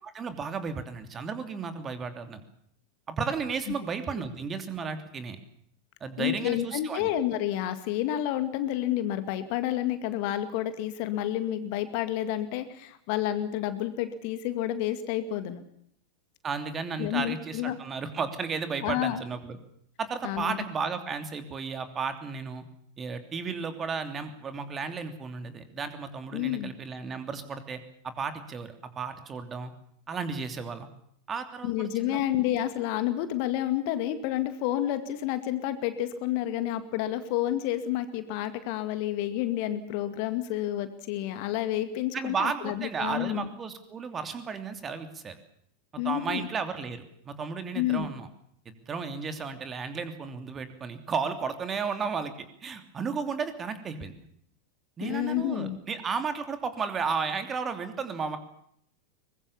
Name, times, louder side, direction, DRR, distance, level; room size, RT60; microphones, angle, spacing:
voice 1, 0.0-2.4 3.1-5.4 6.0-7.1 16.4-19.6 20.0-22.6 23.0-29.7 30.1-30.9 31.3-32.2 42.1-45.4 46.0-48.3 48.6-54.1 55.0-58.4, right 5 dB, 20° right, 9 dB, 3.0 m, -34 dB
voice 2, 6.2-15.6 17.0-17.8 18.8-19.2 20.2-20.6 26.3-26.7 31.6-43.5 46.0-46.5 47.7-48.1 55.0-55.8, left 12 dB, 45° left, 11 dB, 2.2 m, -30 dB
23.5 x 21.0 x 7.2 m, 0.70 s
figure-of-eight pair, 90°, 0 cm